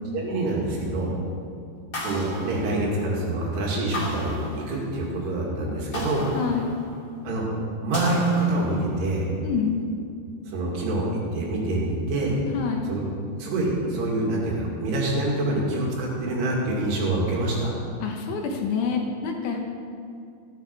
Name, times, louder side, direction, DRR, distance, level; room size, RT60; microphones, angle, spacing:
voice 1, 0.1-1.1 2.0-6.3 7.2-7.5 7.8-9.3 10.5-12.4 12.9-13.0 13.4-17.8, right 2 dB, 90° right, -3 dB, 4.3 m, -26 dB
sound 1, 1.9-3.3 3.9-5.1 5.9-7.2 7.9-9.1, left 1 dB, 30° left, 2.4 m, -34 dB
voice 2, 6.3-6.8 9.4-9.9 12.5-12.9 18.0-19.7, left 5 dB, 75° left, 2 dB, 1.9 m, -27 dB
15.0 x 10.5 x 4.6 m, 2.5 s
omnidirectional pair, 4.6 m